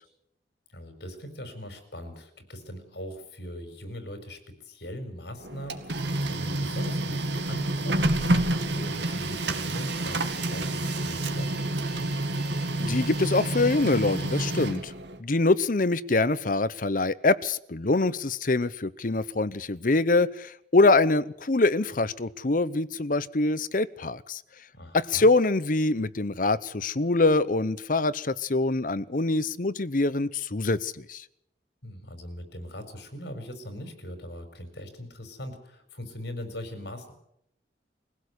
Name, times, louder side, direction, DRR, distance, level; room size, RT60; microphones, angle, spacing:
voice 1, 0.7-11.7 24.7-25.3 31.8-37.1, left 1 dB, 70° left, 8 dB, 4.8 m, -41 dB
Printer, 5.4-15.2, right 2 dB, 85° right, 2.2 m, -29 dB
Alarm, 9.8-13.7, right 2 dB, 5° right, 5.4 m, -50 dB
voice 2, 12.8-14.9 15.2-24.4 24.9-31.2, left 2 dB, 50° left, 16 dB, 0.9 m, -24 dB
22.0 x 16.5 x 8.1 m, 0.75 s
head